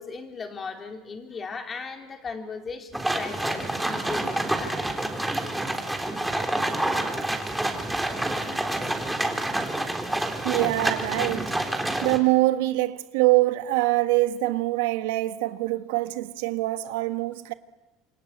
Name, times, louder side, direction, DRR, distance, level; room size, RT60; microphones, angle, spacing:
voice 1, 0.0-4.8, left 5 dB, 30° left, 3.9 m, -37 dB
sound 1, 2.9-12.2, right 1 dB, 5° right, 3.6 m, -28 dB
voice 2, 10.4-11.5 12.0-17.5, right 18 dB, 90° right, 1.3 m, -24 dB
27.5 x 23.5 x 8.5 m
supercardioid pair, 110°, 0 cm